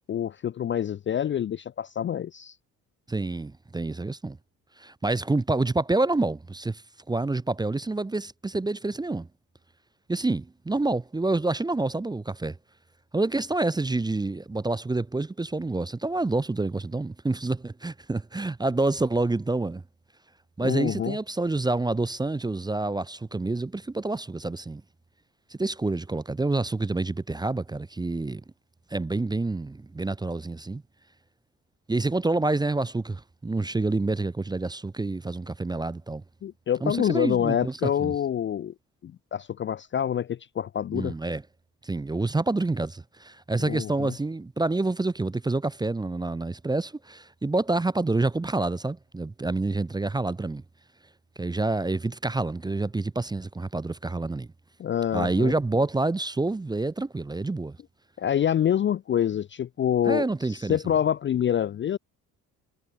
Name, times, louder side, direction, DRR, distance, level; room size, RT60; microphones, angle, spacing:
voice 1, 0.1-2.5 20.6-21.2 36.4-38.7 39.0-41.1 43.7-44.1 54.8-55.5 58.2-62.0, left 9 dB, 25° left, 0.6 m, -26 dB
voice 2, 3.1-4.4 4.8-6.8 7.1-9.3 10.1-12.6 13.1-19.8 20.6-24.8 25.6-28.4 28.9-30.8 31.9-36.2 36.8-38.1 40.9-41.4 41.8-50.6 51.4-54.5 55.1-57.8 60.0-60.9, right 2 dB, 10° right, 0.7 m, -28 dB
figure-of-eight pair, 50°, 45 cm